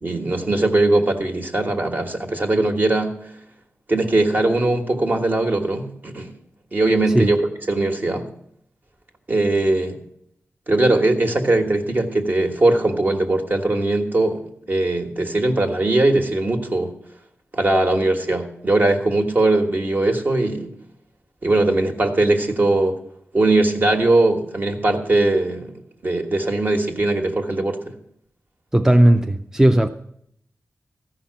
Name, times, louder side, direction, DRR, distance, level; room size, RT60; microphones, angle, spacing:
voice 1, 0.0-3.2 3.9-6.3 6.7-8.2 9.3-10.0 10.7-14.4 14.7-16.9 17.5-20.7 21.4-23.0 23.3-25.7 26.0-27.9, right 2 dB, 40° right, 1.5 m, -20 dB
voice 2, 28.7-29.9, right 1 dB, 10° right, 0.4 m, -15 dB
14.5 x 5.8 x 7.9 m
wide cardioid pair, 115°, 5 cm